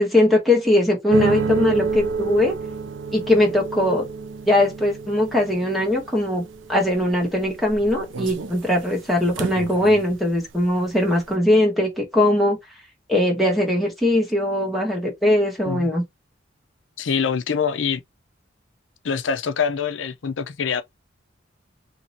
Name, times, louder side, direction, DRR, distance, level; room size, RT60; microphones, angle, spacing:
voice 1, 0.0-2.6 3.1-4.1 4.5-6.4 6.7-12.6 13.1-16.0, left 1 dB, ahead, 1.5 m, -20 dB
sound 1, 1.1-10.4 10.6-11.2, right 4 dB, 80° right, 0.5 m, -29 dB
voice 2, 17.0-18.0 19.0-20.8, left 6 dB, 80° left, 0.6 m, -24 dB
3.0 x 2.8 x 4.1 m
head